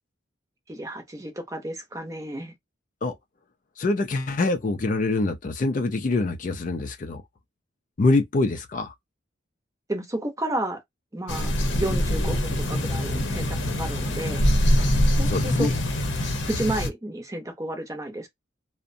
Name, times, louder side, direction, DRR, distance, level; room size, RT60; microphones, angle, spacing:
voice 1, 0.7-2.5 9.9-10.8 11.1-14.5 15.2-15.7 16.5-18.3, right 1 dB, 15° right, 0.6 m, -32 dB
voice 2, 3.8-7.2 8.0-8.9 15.3-15.7, left 2 dB, 45° left, 0.4 m, -25 dB
sound 1, 11.3-16.9, left 1 dB, 75° left, 0.7 m, -24 dB
2.6 x 2.1 x 2.5 m
head